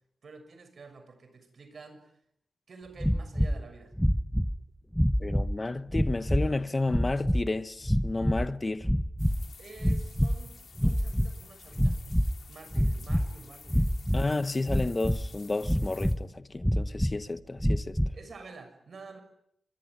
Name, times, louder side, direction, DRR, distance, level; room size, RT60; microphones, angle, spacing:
voice 1, 0.2-2.1 2.7-3.9 9.6-12.0 12.5-13.9 18.1-19.2, right 4 dB, 60° right, 6.5 m, -49 dB
sound 1, 3.0-3.6 4.0-4.6 4.9-5.6 5.9-6.5 6.9-7.4 7.8-8.5 8.8-9.5 9.8-10.4 10.8-11.3 11.7-12.4 12.7-13.3 13.7-14.2 14.7-15.3 15.6-16.2 16.6-17.2 17.6-18.2, equal, ahead, 1.0 m, -26 dB
voice 2, 5.2-8.9 14.1-18.0, left 2 dB, 25° left, 1.1 m, -31 dB
sound 2, 9.2-16.1, left 6 dB, 75° left, 2.8 m, -52 dB
25.5 x 23.0 x 9.5 m
wide cardioid pair, 135°, 0 cm